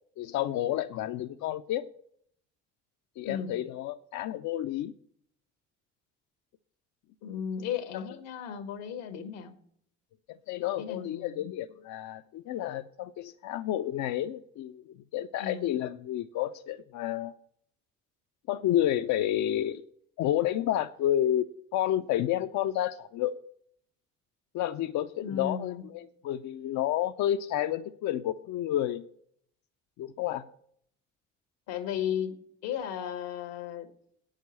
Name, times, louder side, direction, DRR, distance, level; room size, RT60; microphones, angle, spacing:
voice 1, 0.2-1.9 3.2-4.9 7.9-8.0 10.3-14.8 15.1-17.3 18.5-19.8 20.2-21.5 21.7-23.4 24.5-29.1 30.0-30.4, left 12 dB, 65° left, 7 dB, 0.5 m, -30 dB
voice 2, 7.2-9.5 10.8-11.5 15.4-15.7 25.2-25.8 31.7-33.9, left 8 dB, 90° left, 9 dB, 1.3 m, -35 dB
8.4 x 6.5 x 8.2 m, 0.66 s
supercardioid pair, 65°, 31 cm